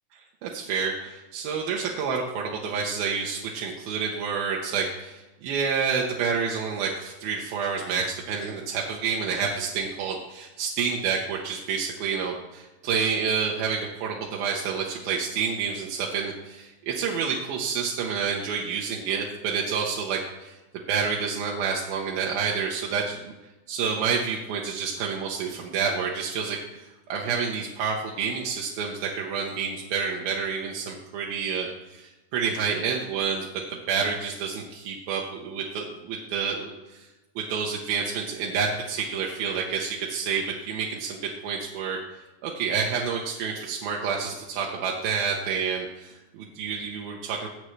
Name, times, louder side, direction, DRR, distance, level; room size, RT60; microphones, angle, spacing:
voice 1, 0.1-20.6 20.9-23.3 23.7-37.1 37.4-42.0 42.4-47.5, right 6 dB, 70° right, -1 dB, 2.4 m, -29 dB
19.0 x 7.5 x 3.3 m, 1.1 s
omnidirectional pair, 5.2 m